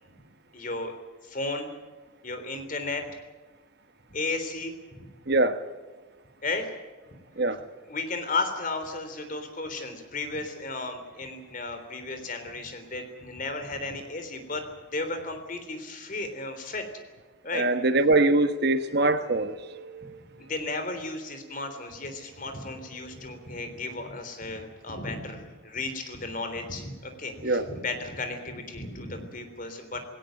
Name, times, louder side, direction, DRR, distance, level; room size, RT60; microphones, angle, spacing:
voice 1, 0.5-0.9 1.2-1.7 2.2-3.1 4.1-5.1 6.4-6.7 7.5-7.6 7.8-14.6 14.9-16.9 17.4-17.7 20.4-30.0, left 3 dB, 40° left, 3.5 m, -34 dB
voice 2, 17.5-19.5 27.4-27.7, right 2 dB, 50° right, 1.2 m, -22 dB
18.5 x 18.0 x 9.1 m
head